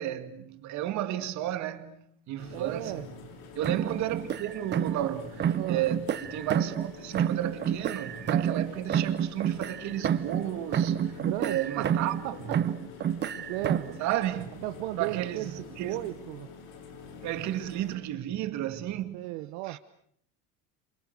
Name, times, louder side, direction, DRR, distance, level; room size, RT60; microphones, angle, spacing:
voice 1, 0.0-3.1 3.5-12.5 14.0-14.6 15.0-16.1 17.2-19.3 19.7-19.8, right 12 dB, 50° right, 2.3 m, -33 dB
sound 1, 2.4-18.0, left 6 dB, 65° left, 7.1 m, -46 dB
voice 2, 2.5-3.1 5.5-5.9 11.2-11.6 12.2-12.8 13.3-14.0 14.6-15.5 15.8-16.5 19.1-19.8, right 18 dB, 75° right, 1.1 m, -35 dB
sound 2, 3.6-5.1 5.4-6.9 7.1-10.5 10.7-12.2 12.5-14.0, right 9 dB, 30° right, 1.1 m, -29 dB
29.0 x 27.5 x 6.6 m
cardioid pair, 155°, 37 cm